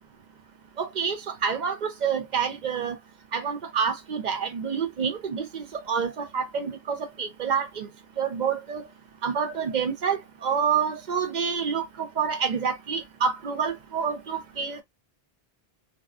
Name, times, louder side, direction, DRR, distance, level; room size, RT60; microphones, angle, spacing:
voice 1, 0.8-1.2 1.4-2.9 3.3-7.9 8.2-8.8 9.2-14.8, right 6 dB, 55° right, 0.6 m, -28 dB
2.7 x 2.2 x 2.3 m
omnidirectional pair, 1.0 m